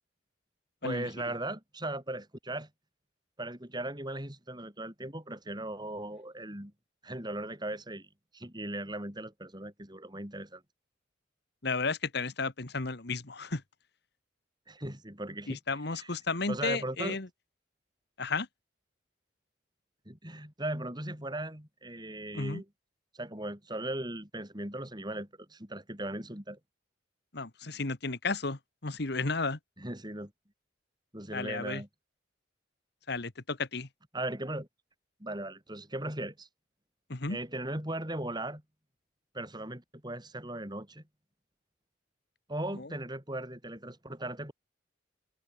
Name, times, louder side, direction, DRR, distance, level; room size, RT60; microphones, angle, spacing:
voice 1, 0.8-2.7 3.4-6.7 7.0-8.1 8.3-10.6 14.7-15.6 15.9-16.1 16.5-17.2 20.0-22.7 23.1-26.6 29.8-30.3 31.1-31.9 34.1-34.7 35.2-36.5 37.3-38.6 39.3-41.0 42.5-44.5, right 1 dB, 20° right, 6.6 m, -38 dB
voice 2, 11.6-13.6 15.5-17.3 18.2-18.5 22.3-22.6 27.3-29.6 31.3-31.8 33.1-33.9 37.1-37.4 42.8-42.9, left 3 dB, 60° left, 1.5 m, -33 dB
head